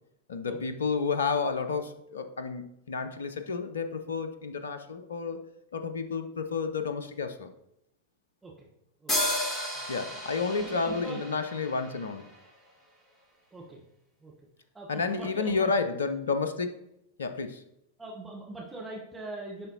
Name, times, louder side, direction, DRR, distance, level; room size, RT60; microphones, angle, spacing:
voice 1, 0.3-5.4 5.7-7.5 9.9-12.3 14.9-16.8 17.2-17.6, left 4 dB, 70° left, 9 dB, 0.5 m, -31 dB
sound 1, 9.1-12.6, left 1 dB, 20° left, 2.6 m, -33 dB
voice 2, 10.5-11.2 13.5-13.8 14.2-14.3 14.7-15.7 18.0-19.7, right 2 dB, 10° right, -3 dB, 1.0 m, -41 dB
10.5 x 3.9 x 2.8 m, 0.82 s
figure-of-eight pair, 90°, 0 cm